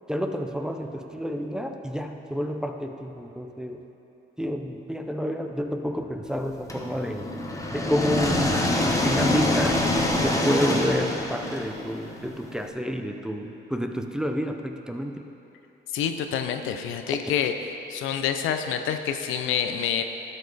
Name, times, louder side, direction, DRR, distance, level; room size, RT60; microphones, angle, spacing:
voice 1, 0.1-3.8 4.4-7.3 7.7-8.7 9.0-9.8 10.2-15.2 17.1-17.2, equal, 5° right, 4 dB, 0.5 m, -29 dB
sound 1, 6.7-12.6, left 1 dB, 15° left, 0.9 m, -26 dB
voice 2, 15.9-17.5 17.9-20.0, left 8 dB, 85° left, 7 dB, 0.6 m, -27 dB
12.5 x 5.3 x 4.0 m, 2.9 s
cardioid pair, 90°, 20 cm